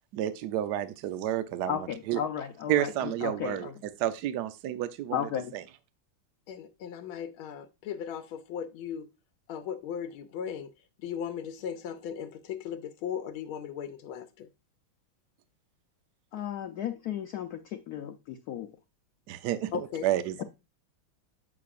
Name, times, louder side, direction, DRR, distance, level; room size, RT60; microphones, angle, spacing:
voice 1, 0.1-2.2 2.7-3.7 4.0-5.6 19.3-20.4, right 12 dB, 70° right, 1.1 m, -30 dB
voice 2, 1.7-3.7 5.1-5.5 16.3-18.7, left 9 dB, 70° left, 0.9 m, -34 dB
voice 3, 6.5-9.1 9.5-10.7 11.0-14.5 19.7-20.1 20.4-20.5, left 8 dB, 90° left, 1.5 m, -37 dB
8.5 x 5.9 x 2.4 m
omnidirectional pair, 2.3 m